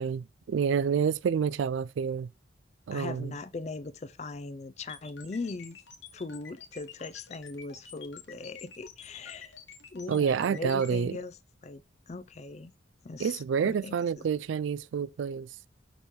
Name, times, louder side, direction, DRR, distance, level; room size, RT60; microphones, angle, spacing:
voice 1, 0.0-2.3 2.9-3.4 10.1-11.2 13.2-15.5, right 7 dB, 75° right, 0.3 m, -28 dB
voice 2, 2.9-5.8 6.1-9.5 9.9-11.4 11.6-11.8 12.1-12.7 13.0-14.2, left 3 dB, 35° left, 0.4 m, -39 dB
sound 1, 4.9-11.0, left 7 dB, 70° left, 1.1 m, -48 dB
5.2 x 4.3 x 4.6 m
head